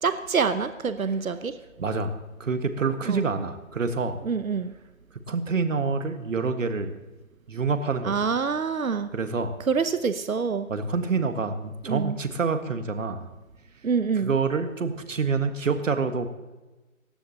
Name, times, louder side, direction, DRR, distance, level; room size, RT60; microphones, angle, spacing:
voice 1, 0.0-1.6 3.1-3.2 4.2-4.7 8.0-9.1 9.7-10.7 11.9-12.2 13.8-14.3, right 5 dB, 85° right, 11 dB, 1.0 m, -26 dB
voice 2, 1.8-2.1 2.4-4.2 5.3-6.9 7.5-8.1 9.1-9.5 10.7-13.3 14.1-16.3, right 4 dB, 65° right, 8 dB, 1.7 m, -27 dB
19.0 x 15.5 x 2.9 m, 1.1 s
figure-of-eight pair, 145°, 40 cm